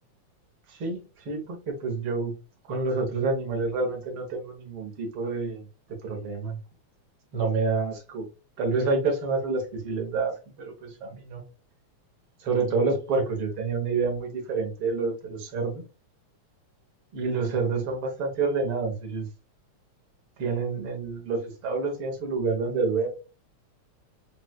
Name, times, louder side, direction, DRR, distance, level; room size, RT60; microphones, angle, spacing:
voice 1, 0.7-2.3 2.7-5.6 6.0-6.6 7.3-8.3 8.6-11.4 12.4-15.8 17.1-19.3 20.4-23.1, right 4 dB, 55° right, 1.7 m, -28 dB
6.3 x 2.6 x 2.3 m
omnidirectional pair, 3.5 m